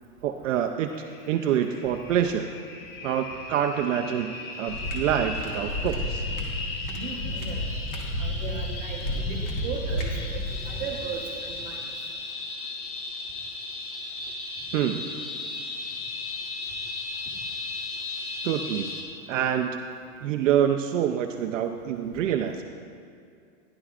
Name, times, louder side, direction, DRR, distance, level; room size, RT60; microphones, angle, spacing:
voice 1, 0.2-0.9 1.3-2.5 3.0-6.2 14.7-15.0 18.4-18.9 19.3-19.8 20.2-22.6, right 9 dB, 60° right, 5 dB, 0.6 m, -26 dB
sound 1, 0.9-19.0, left 3 dB, 65° left, 1.9 m, -37 dB
sound 2, 4.7-10.8, left 1 dB, 30° left, 1.3 m, -31 dB
voice 2, 6.9-7.6 8.2-10.4 10.7-11.8, right 5 dB, 20° right, -3 dB, 1.3 m, -36 dB
15.0 x 11.0 x 2.4 m, 2.3 s
supercardioid pair, 165°, 43 cm